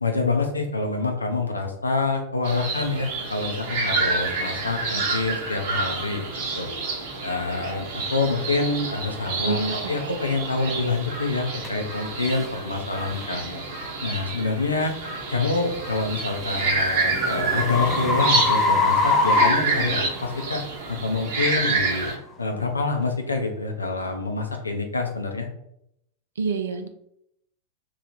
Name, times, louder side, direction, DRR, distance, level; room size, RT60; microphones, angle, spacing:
voice 1, 0.0-6.7 7.2-13.6 14.0-14.9 15.3-20.6 20.9-22.1 22.4-25.5, left 3 dB, 80° left, 3 dB, 0.6 m, -26 dB
sound 1, 2.4-22.2, right 3 dB, 50° right, 1.0 m, -28 dB
voice 2, 9.4-10.2 26.4-26.9, right 5 dB, 65° right, 8 dB, 0.4 m, -28 dB
sound 2, 11.6-11.7 12.3-12.5 13.1-13.3 16.0-20.4, left 3 dB, 20° left, 0.5 m, -23 dB
3.1 x 2.4 x 3.9 m, 0.76 s
figure-of-eight pair, 90°, 0 cm